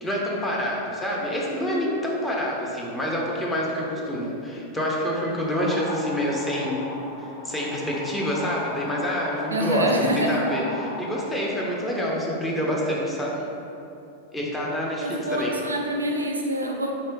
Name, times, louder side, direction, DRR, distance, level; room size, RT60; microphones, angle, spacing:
voice 1, 0.0-6.8 7.2-13.4 14.3-15.5, equal, 10° left, -4 dB, 0.6 m, -27 dB
sound 1, 5.3-11.2, left 1 dB, 55° left, 0.5 m, -37 dB
voice 2, 9.5-10.4 15.0-16.9, right 1 dB, 75° right, 2 dB, 0.3 m, -26 dB
3.6 x 3.2 x 2.9 m, 2.7 s
figure-of-eight pair, 90°, 0 cm